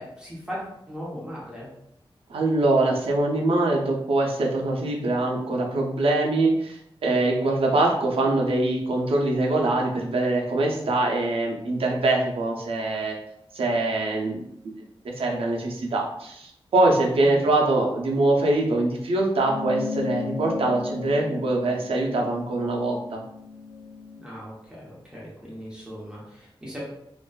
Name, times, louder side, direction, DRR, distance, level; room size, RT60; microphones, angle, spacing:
voice 1, 0.0-1.7 17.2-17.5 24.2-26.8, equal, 10° right, -6 dB, 0.8 m, -38 dB
voice 2, 2.3-13.2 13.5-14.5 15.2-23.2, right 2 dB, 80° right, 0 dB, 0.5 m, -23 dB
sound 1, 19.4-24.2, left 4 dB, 40° left, 0.8 m, -35 dB
2.5 x 2.2 x 2.2 m, 0.78 s
wide cardioid pair, 110°, 9 cm